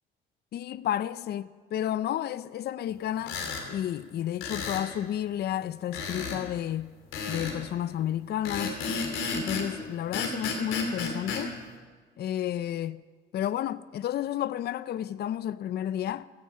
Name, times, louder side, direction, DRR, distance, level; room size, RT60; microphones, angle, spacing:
voice 1, 0.5-3.4 3.7-6.9 7.3-8.8 9.3-11.5 12.2-13.0 13.3-16.2, left 11 dB, 55° left, 0.4 m, -31 dB
sound 1, 3.2-3.7 4.4-4.9 5.9-6.4 7.1-7.6 8.4-9.7 10.1-11.4, left 4 dB, 90° left, 2.8 m, -32 dB
16.0 x 14.0 x 5.7 m
cardioid pair, 90°, 20 cm